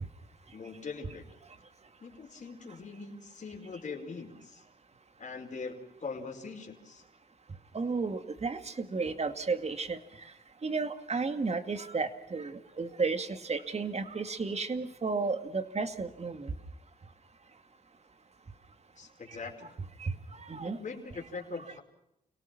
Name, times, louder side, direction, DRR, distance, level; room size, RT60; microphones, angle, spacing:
voice 1, 0.5-1.2 2.0-4.6 5.2-7.0 19.0-19.7 20.8-21.8, left 4 dB, 45° left, 0 dB, 5.0 m, -42 dB
voice 2, 7.7-10.3 10.6-16.5 19.3-19.4 20.0-20.8, right 4 dB, 40° right, 9 dB, 2.3 m, -33 dB
30.0 x 18.0 x 6.1 m, 0.81 s
cardioid pair, 75°, 17 cm